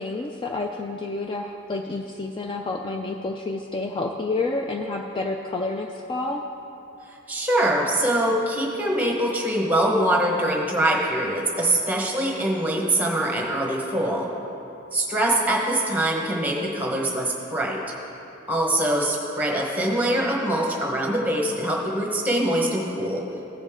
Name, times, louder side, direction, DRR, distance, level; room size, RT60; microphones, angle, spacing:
voice 1, 0.0-6.4, left 3 dB, 25° left, 2 dB, 0.3 m, -29 dB
voice 2, 7.3-14.3 14.9-17.8 18.5-23.2, right 1 dB, 10° right, -1 dB, 1.1 m, -23 dB
15.0 x 5.2 x 3.6 m, 3.0 s
head